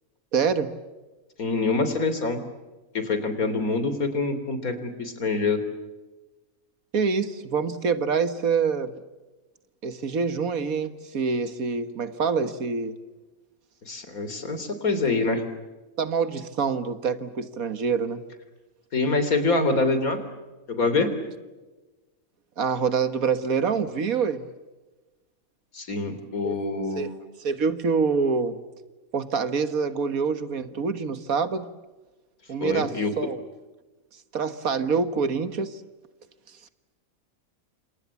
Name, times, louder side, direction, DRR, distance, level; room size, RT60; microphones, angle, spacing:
voice 1, 0.3-0.7 6.9-9.0 9.8-12.9 16.0-18.2 22.6-24.5 26.4-26.6 27.0-27.1 27.4-28.6 29.1-31.7 32.5-33.4 34.3-35.8, right 5 dB, 80° right, 11 dB, 1.9 m, -26 dB
voice 2, 1.4-2.4 2.9-5.6 13.9-15.4 18.9-20.2 20.7-21.1 25.7-27.1 32.6-33.1, left 3 dB, 90° left, 10 dB, 3.7 m, -25 dB
29.0 x 27.5 x 7.2 m, 1.2 s
omnidirectional pair, 1.5 m